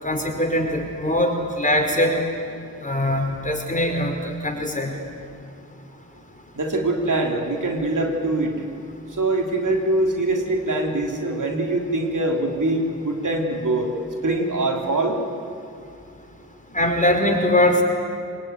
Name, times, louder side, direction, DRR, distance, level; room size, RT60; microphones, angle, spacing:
voice 1, 0.0-2.2 2.8-4.9 14.9-15.0 16.7-17.8, left 1 dB, 25° left, 2 dB, 5.3 m, -22 dB
voice 2, 6.5-8.7 9.1-13.9 14.2-15.2, right 2 dB, 70° right, 1 dB, 3.6 m, -23 dB
24.0 x 21.0 x 9.7 m, 2.4 s
cardioid pair, 45°, 32 cm